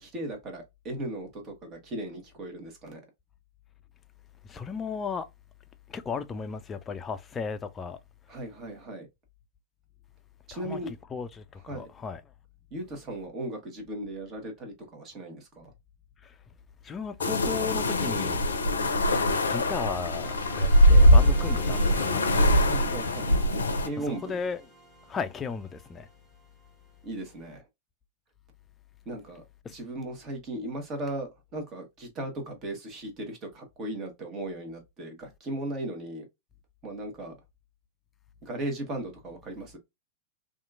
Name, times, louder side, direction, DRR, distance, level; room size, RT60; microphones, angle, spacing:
voice 1, 0.0-3.0 8.3-9.1 10.5-10.9 11.7-11.9 12.7-15.7 22.6-23.3 23.8-24.4 27.0-27.7 29.0-36.2 36.8-37.3 38.4-39.8, right 1 dB, 35° right, 1.2 m, -37 dB
voice 2, 4.5-5.3 5.9-8.0 10.5-12.2 16.2-16.3 16.8-18.5 19.5-22.6 24.0-24.6 25.1-26.1 29.6-29.8, left 5 dB, 20° left, 0.4 m, -35 dB
sound 1, 17.2-23.9, equal, 80° left, 0.5 m, -22 dB
sound 2, 20.2-26.9, right 1 dB, 10° right, 1.2 m, -47 dB
2.8 x 2.5 x 2.4 m
figure-of-eight pair, 100°, 0 cm